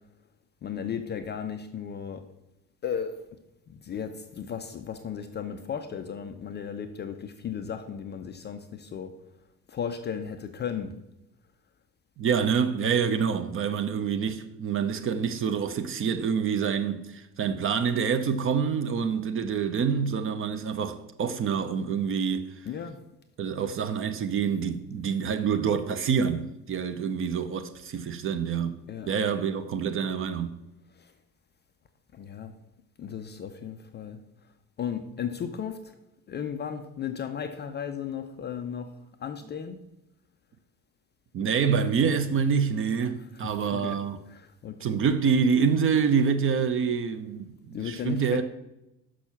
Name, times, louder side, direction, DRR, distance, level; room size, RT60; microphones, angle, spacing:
voice 1, 0.6-2.2 2.8-3.2 3.7-9.1 9.7-10.9 22.6-23.0 28.9-29.1 30.9-31.1 32.1-32.5 33.0-34.2 34.8-35.9 36.3-38.9 39.2-39.8 43.3-44.0 44.3-44.9 47.7-48.4, left 8 dB, 20° left, 0.5 m, -35 dB
voice 2, 12.2-22.7 23.4-28.8 29.1-30.6 41.3-44.2 44.8-48.4, right 6 dB, 25° right, 0.6 m, -26 dB
6.1 x 6.1 x 5.8 m
figure-of-eight pair, 60°, 50 cm